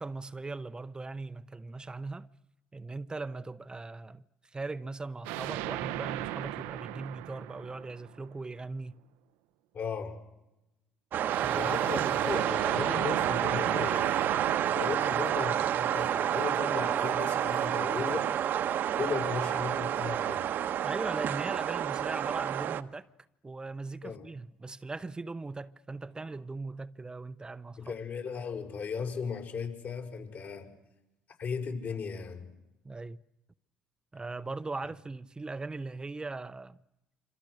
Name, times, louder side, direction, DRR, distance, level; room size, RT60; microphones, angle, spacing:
voice 1, 0.0-2.3 2.7-9.0 11.4-12.2 20.8-23.1 23.4-27.9 32.8-33.2 34.1-36.8, right 3 dB, 20° right, 0.8 m, -39 dB
sound 1, 5.2-8.4 11.3-16.5, right 15 dB, 80° right, 0.9 m, -37 dB
voice 2, 9.7-10.2 11.5-18.3 19.0-20.5 24.0-24.3 27.8-30.7 31.4-32.4, left 6 dB, 55° left, 6.3 m, -36 dB
sound 2, 11.1-22.8, right 10 dB, 60° right, 1.2 m, -29 dB
26.5 x 26.5 x 6.6 m
hypercardioid pair, 60°, 4 cm